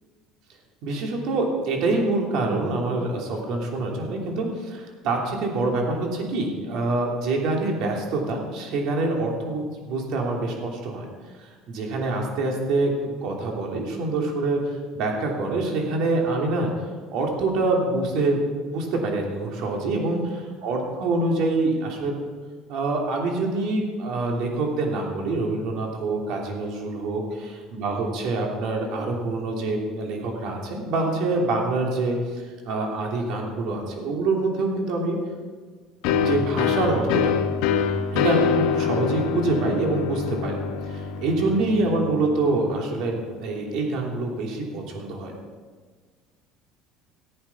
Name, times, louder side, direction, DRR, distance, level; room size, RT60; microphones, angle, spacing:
voice 1, 0.8-11.1 11.4-14.6 14.9-16.7 17.1-22.1 22.7-35.2 36.2-37.3 38.1-40.6 40.9-45.3, right 2 dB, 65° right, 1 dB, 3.0 m, -26 dB
sound 1, 36.0-43.5, left 7 dB, 75° left, 1.1 m, -26 dB
15.5 x 8.7 x 6.0 m, 1.5 s
cardioid pair, 130°, 0 cm